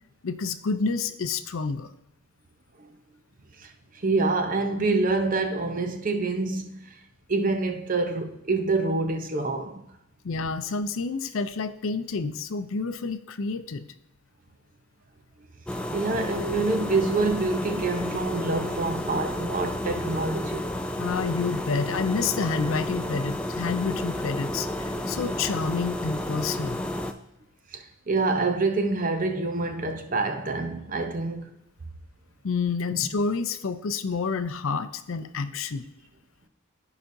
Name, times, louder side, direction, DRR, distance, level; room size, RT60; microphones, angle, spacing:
voice 1, 0.2-1.9 10.2-13.9 21.0-26.8 32.4-35.9, left 4 dB, 70° left, 0.5 m, -29 dB
voice 2, 4.0-7.0 7.3-9.8 15.9-20.7 27.7-31.5 32.9-33.1, right 3 dB, 40° right, 0.7 m, -26 dB
sound 1, 15.7-27.1, left 1 dB, 5° left, 0.3 m, -31 dB
14.5 x 4.9 x 2.7 m
head